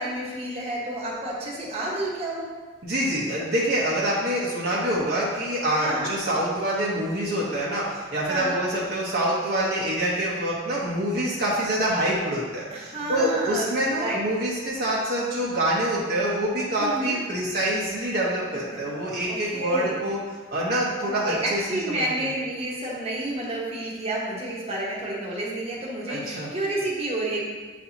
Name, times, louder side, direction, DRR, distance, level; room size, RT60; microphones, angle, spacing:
voice 1, 0.0-2.5 5.8-6.1 8.3-8.6 12.7-14.2 16.8-17.2 18.5-18.8 19.2-20.0 21.0-27.4, right 1 dB, 30° right, -4 dB, 1.1 m, -30 dB
voice 2, 2.8-20.2 20.5-22.0 26.1-26.5, right 1 dB, 50° right, -5 dB, 0.9 m, -26 dB
8.3 x 4.2 x 2.9 m, 1.4 s
head